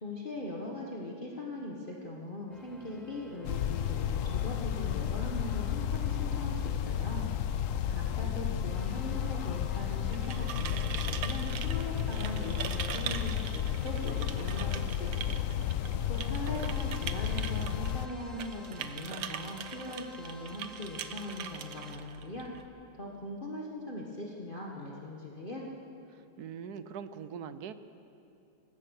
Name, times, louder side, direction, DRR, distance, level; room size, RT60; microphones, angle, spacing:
voice 1, 0.0-7.3 7.9-15.5 16.1-22.5 23.0-25.7, left 1 dB, 30° left, -2 dB, 1.7 m, -40 dB
sound 1, 2.5-6.7 8.7-14.7 16.7-21.9, right 1 dB, ahead, 1.7 m, -51 dB
sound 2, 3.4-18.1, left 10 dB, 70° left, 0.7 m, -32 dB
voice 2, 7.7-8.8 16.4-17.0 26.1-27.7, right 7 dB, 65° right, 12 dB, 1.2 m, -45 dB
sound 3, 10.0-22.6, right 9 dB, 90° right, 1.6 m, -42 dB
26.0 x 15.5 x 6.6 m, 2.8 s
omnidirectional pair, 2.0 m